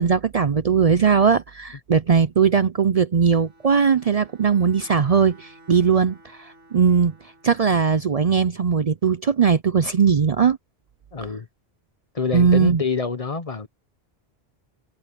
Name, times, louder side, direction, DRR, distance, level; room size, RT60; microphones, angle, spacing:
voice 1, 0.0-7.1 7.4-10.6 12.3-12.8, right 6 dB, 45° right, 0.5 m, -19 dB
Bowed string instrument, 3.3-7.8, right 1 dB, 55° left, 6.4 m, -52 dB
voice 2, 11.1-11.5 12.1-13.7, left 4 dB, 35° left, 1.0 m, -26 dB
omnidirectional pair, 1.1 m